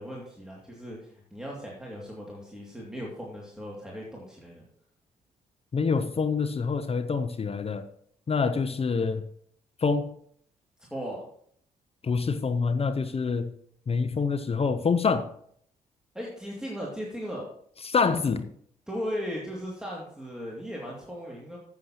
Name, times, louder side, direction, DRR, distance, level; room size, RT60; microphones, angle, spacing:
voice 1, 0.0-4.6 10.9-11.2 16.1-17.5 18.9-21.6, equal, 5° right, -3 dB, 2.4 m, -37 dB
voice 2, 5.7-7.9 8.3-9.2 9.8-10.1 12.0-13.5 13.9-15.3 17.8-18.5, left 5 dB, 30° left, 10 dB, 0.7 m, -26 dB
12.5 x 7.9 x 2.9 m, 0.65 s
hypercardioid pair, 45°, 19 cm